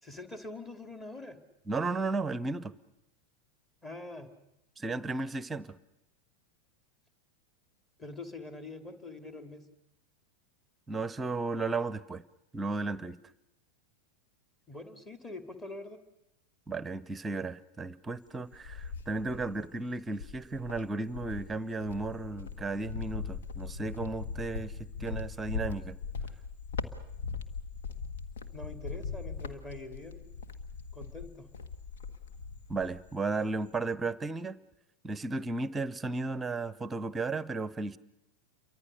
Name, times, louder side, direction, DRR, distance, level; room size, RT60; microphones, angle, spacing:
voice 1, 0.0-1.4 3.8-4.3 8.0-9.6 14.7-16.0 28.5-30.2 30.9-31.5, left 2 dB, 15° left, 8 dB, 2.7 m, -44 dB
voice 2, 1.7-2.7 4.8-5.8 10.9-12.2 12.5-13.2 16.7-26.0 32.7-34.6 35.0-38.0, right 3 dB, 15° right, 18 dB, 0.9 m, -34 dB
Cricket, 18.1-19.7 20.1-33.1 33.4-33.9, left 5 dB, 60° left, 1.6 m, -40 dB
29.0 x 24.0 x 6.7 m, 0.89 s
figure-of-eight pair, 90°, 0 cm